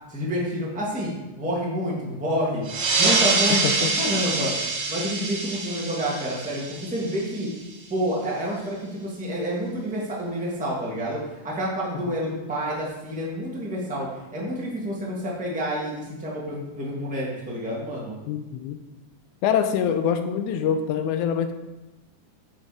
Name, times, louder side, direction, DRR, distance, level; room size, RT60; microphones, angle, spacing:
voice 1, 0.1-2.6 3.0-3.6 3.9-7.5 7.9-11.2 11.4-18.1, equal, 5° right, -5 dB, 0.9 m, -28 dB
sound 1, 2.6-7.7, right 3 dB, 75° right, 1.0 m, -25 dB
voice 2, 3.5-3.9 12.1-12.2 18.3-18.8 19.4-21.5, left 8 dB, 80° left, 8 dB, 1.9 m, -25 dB
9.4 x 5.1 x 4.9 m, 1.0 s
omnidirectional pair, 3.7 m